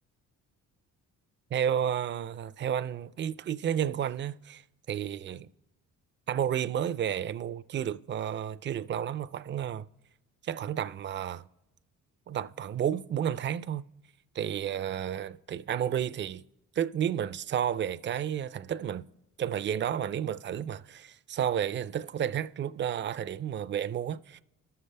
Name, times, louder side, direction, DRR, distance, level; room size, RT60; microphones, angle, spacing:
voice 1, 1.5-4.6 4.9-5.5 6.3-9.9 10.4-11.4 12.3-13.9 14.3-16.4 16.8-19.0 19.4-24.4, right 9 dB, 35° right, 0.4 m, -31 dB
19.5 x 6.7 x 3.3 m
cardioid pair, 105°, 33 cm